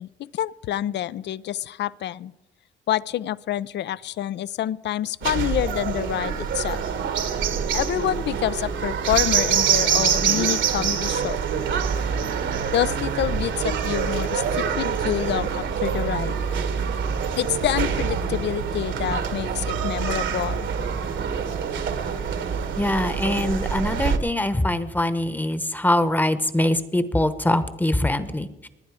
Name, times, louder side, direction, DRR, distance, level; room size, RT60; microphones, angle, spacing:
voice 1, 0.0-2.3 2.9-6.8 7.7-11.4 12.7-16.4 17.4-20.6, left 12 dB, 60° left, 19 dB, 0.5 m, -27 dB
sound 1, 5.2-24.2, right 7 dB, 70° right, 1.5 m, -25 dB
voice 2, 22.8-28.7, left 1 dB, 10° left, 13 dB, 1.0 m, -23 dB
21.0 x 9.5 x 4.9 m, 1.0 s
cardioid pair, 90°, 20 cm